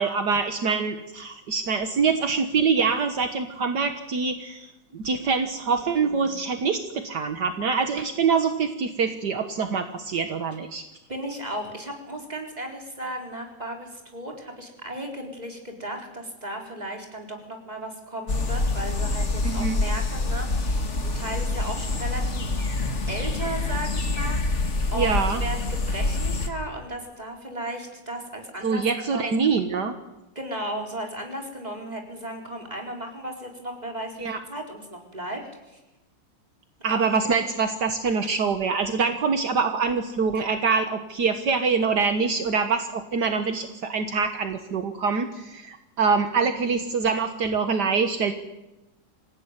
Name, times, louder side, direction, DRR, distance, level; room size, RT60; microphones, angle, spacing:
voice 1, 0.0-10.8 19.4-19.8 24.9-25.4 28.6-29.9 34.2-34.4 36.8-48.3, right 5 dB, 65° right, 7 dB, 1.9 m, -25 dB
voice 2, 6.0-6.4 11.1-22.4 23.1-24.6 24.9-29.4 30.3-35.4 35.7-35.8 36.9-37.0 40.3-40.5, right 1 dB, 20° right, 2 dB, 4.4 m, -35 dB
sound 1, 18.3-26.5, left 2 dB, 40° left, 2.2 m, -26 dB
26.5 x 16.0 x 9.9 m, 1.0 s
omnidirectional pair, 1.9 m